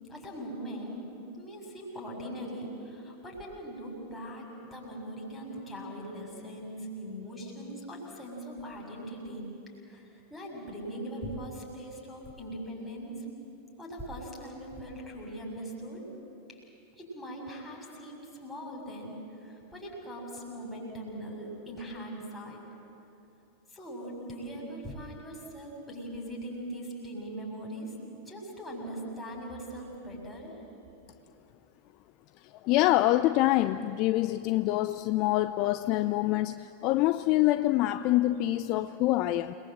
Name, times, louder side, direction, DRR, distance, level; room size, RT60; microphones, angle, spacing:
voice 1, 0.1-9.5 9.9-13.3 13.8-16.0 16.5-16.6 17.0-22.6 23.7-30.6, right 1 dB, 5° left, -3 dB, 7.1 m, -41 dB
voice 2, 32.6-39.5, left 16 dB, 40° left, 13 dB, 0.5 m, -25 dB
28.5 x 21.0 x 7.9 m, 2.9 s
figure-of-eight pair, 90°, 0 cm